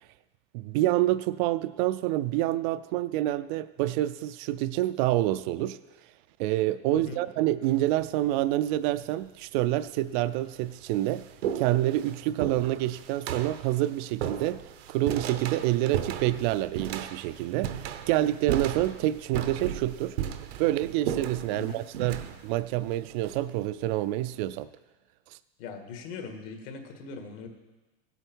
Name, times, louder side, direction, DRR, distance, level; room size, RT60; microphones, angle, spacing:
voice 1, 0.5-5.8 6.4-11.2 11.5-20.2 20.6-24.7, right 15 dB, 50° right, 14 dB, 0.4 m, -27 dB
voice 2, 6.9-7.2 21.5-21.8 25.6-27.5, left 5 dB, 60° left, 5 dB, 1.9 m, -40 dB
sound 1, 7.6-8.1 9.0-9.1 10.0-10.1 10.4-24.0, right 9 dB, 85° right, 1.0 m, -36 dB
16.5 x 8.0 x 4.6 m, 1.2 s
supercardioid pair, 145°, 31 cm